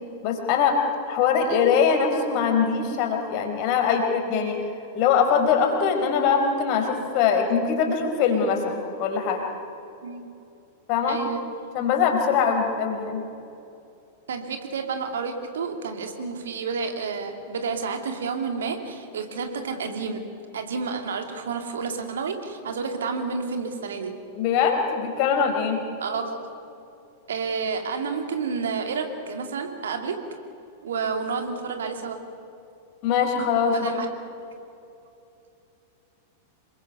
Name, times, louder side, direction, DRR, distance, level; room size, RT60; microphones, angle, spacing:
voice 1, 0.2-0.8 1.1-4.6 4.9-9.4 10.9-11.2 11.7-13.2 24.4-25.8 33.0-33.9, left 6 dB, 45° left, 4 dB, 4.4 m, -22 dB
voice 2, 10.0-10.4 11.1-11.4 14.3-20.2 20.5-24.2 26.0-26.5 27.3-30.2 30.8-32.2 33.7-34.1, right 5 dB, 65° right, 5 dB, 2.7 m, -30 dB
27.0 x 22.5 x 6.7 m, 2.8 s
figure-of-eight pair, 95°, 0 cm